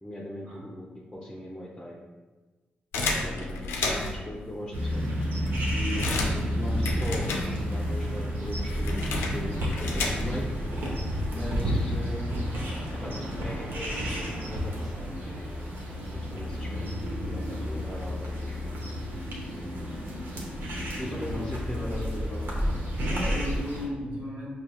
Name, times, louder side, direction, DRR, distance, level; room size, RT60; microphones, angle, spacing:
voice 1, 0.0-2.0 3.0-5.1 5.7-10.6 11.3-12.6 12.9-15.7 16.0-16.8 17.3-18.8 21.0-22.6, left 1 dB, 10° left, -4 dB, 0.7 m, -39 dB
sound 1, 2.9-4.3 4.9-5.0 5.2-10.5, left 3 dB, 85° left, 0.4 m, -32 dB
sound 2, 4.7-23.9, equal, 65° right, 0.9 m, -31 dB
voice 2, 21.1-21.4 21.7-22.0 23.0-24.5, left 1 dB, 50° right, -8 dB, 1.3 m, -36 dB
4.9 x 2.7 x 2.3 m, 1.3 s
supercardioid pair, 45°, 4 cm